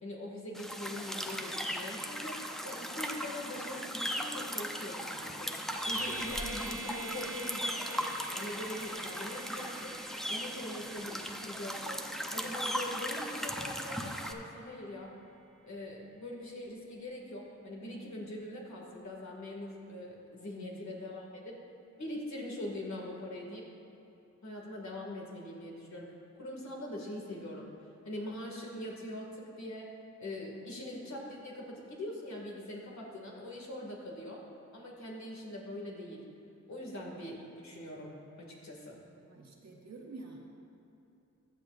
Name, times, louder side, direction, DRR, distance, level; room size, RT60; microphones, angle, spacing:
voice 1, 0.0-8.1 8.3-10.0 10.3-12.0 12.3-15.1 15.6-21.6 22.0-23.7 24.4-27.7 28.0-29.9 30.2-34.4 34.7-36.2 36.7-39.0, left 1 dB, 65° left, -2 dB, 2.3 m, -42 dB
sound 1, 0.5-14.3, equal, ahead, 0.7 m, -38 dB
sound 2, 5.7-15.6, right 2 dB, 30° left, 2.1 m, -47 dB
voice 2, 20.5-20.8 39.2-40.4, right 2 dB, 60° right, -1 dB, 1.5 m, -48 dB
15.0 x 10.0 x 2.6 m, 2.8 s
wide cardioid pair, 75°, 30 cm